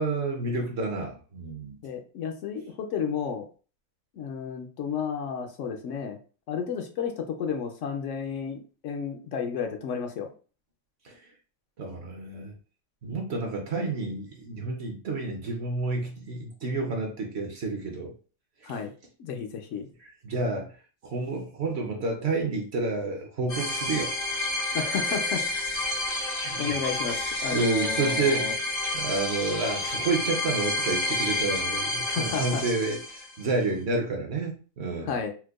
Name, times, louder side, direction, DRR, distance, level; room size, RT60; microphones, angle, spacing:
voice 1, 0.0-1.8 11.0-11.3 11.8-12.5 13.0-18.1 18.6-18.8 20.0-20.7 21.0-24.1 26.4-26.7 27.5-28.6 28.9-35.1, right 3 dB, 60° right, 1 dB, 0.8 m, -30 dB
voice 2, 1.8-3.5 4.2-6.2 6.5-10.3 18.6-18.9 19.2-19.9 24.7-25.5 26.1-26.2 26.6-28.5 32.1-32.6 35.1-35.3, left 6 dB, 70° left, 4 dB, 0.8 m, -32 dB
sound 1, 23.5-33.4, left 2 dB, 85° left, 1.9 m, -29 dB
4.4 x 2.1 x 2.4 m, 0.37 s
omnidirectional pair, 1.5 m